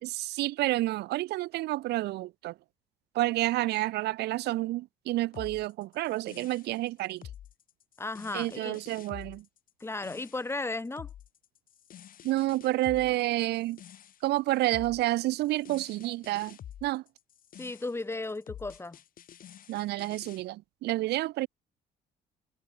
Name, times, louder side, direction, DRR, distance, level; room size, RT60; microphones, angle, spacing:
voice 1, 0.0-2.5 3.1-7.2 8.3-9.4 12.2-13.8 14.2-17.0 19.7-21.5, right 17 dB, 75° right, 0.9 m, -29 dB
sound 1, 5.3-20.4, left 10 dB, 55° left, 6.0 m, -49 dB
voice 2, 8.0-8.8 9.8-11.1 17.6-19.0, left 2 dB, 15° left, 7.6 m, -35 dB
cardioid pair, 110°, 17 cm